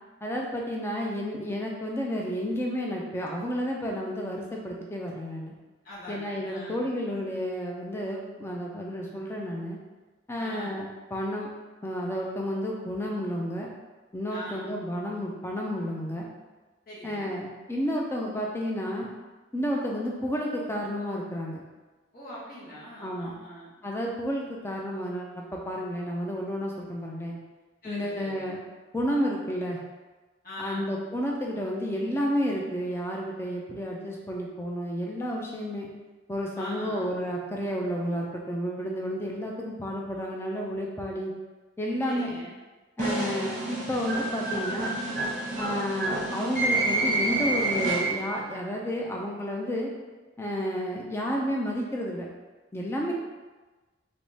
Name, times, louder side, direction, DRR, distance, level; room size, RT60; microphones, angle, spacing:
voice 1, 0.2-5.5 6.1-9.8 10.3-11.5 11.8-13.7 14.1-16.3 17.0-19.1 19.5-21.6 23.0-23.4 23.8-27.4 27.8-28.6 28.9-29.8 30.6-35.9 36.3-41.3 41.8-42.3 43.0-45.0 45.6-49.9 50.4-52.3 52.7-53.1, equal, 10° left, -1 dB, 0.4 m, -31 dB
voice 2, 5.8-6.9 10.4-10.8 14.3-14.7 16.9-17.4 22.1-23.7 27.8-28.5 30.4-30.9 36.6-37.1 42.0-42.5 53.1-53.2, left 1 dB, 45° left, -9 dB, 1.2 m, -42 dB
sound 1, 43.0-48.4, right 2 dB, 35° right, 0.9 m, -28 dB
3.4 x 3.0 x 2.7 m, 1.2 s
head